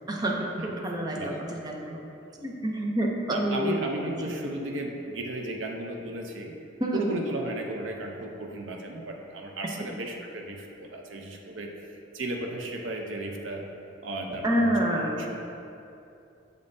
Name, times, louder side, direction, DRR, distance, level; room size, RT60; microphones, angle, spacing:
voice 1, 0.1-1.5 1.7-2.0 2.4-4.4 6.8-7.1 14.4-15.1, right 1 dB, 20° right, -1 dB, 0.6 m, -28 dB
voice 2, 3.3-6.5 6.9-13.6 14.0-15.4, right 1 dB, 80° right, 1 dB, 0.7 m, -35 dB
6.8 x 5.3 x 2.6 m, 2.7 s
head